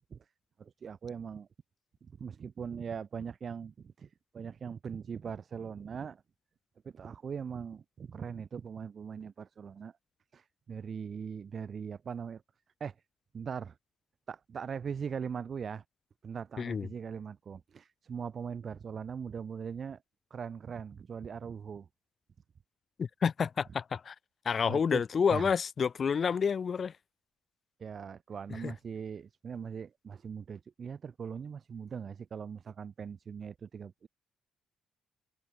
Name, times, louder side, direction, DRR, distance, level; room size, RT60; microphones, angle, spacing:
voice 1, 0.6-1.5 2.2-6.2 6.8-9.9 10.3-12.4 12.8-12.9 13.3-13.7 14.3-15.8 16.2-20.0 20.3-21.9 24.7-25.5 27.8-34.1, right 6 dB, 50° right, 0.4 m, -40 dB
voice 2, 16.6-16.9 23.0-24.1 24.5-26.9 28.6-28.7, left 6 dB, 45° left, 0.3 m, -29 dB
cardioid pair, 90°, 0 cm